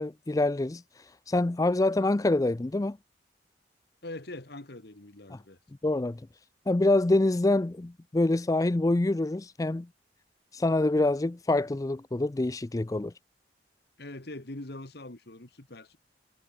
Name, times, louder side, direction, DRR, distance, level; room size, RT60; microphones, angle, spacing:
voice 1, 0.0-3.0 5.3-5.4 5.8-6.2 6.7-9.9 10.5-13.1, left 2 dB, 20° left, 0.4 m, -26 dB
voice 2, 4.0-5.6 14.0-16.0, left 2 dB, 60° left, 1.8 m, -42 dB
head